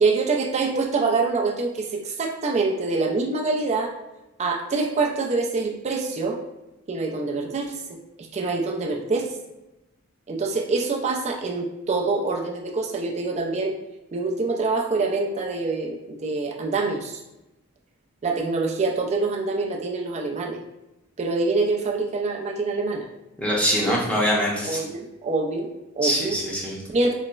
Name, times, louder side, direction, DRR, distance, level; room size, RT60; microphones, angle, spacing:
voice 1, 0.0-3.9 4.4-6.4 6.9-7.8 8.3-9.3 10.3-13.7 14.1-17.2 18.2-20.6 21.2-23.1 24.6-26.4 26.9-27.1, right 3 dB, 30° right, 1 dB, 0.4 m, -25 dB
voice 2, 23.4-24.8 26.0-26.8, equal, 5° left, -5 dB, 0.7 m, -23 dB
4.0 x 2.0 x 2.3 m, 0.96 s
head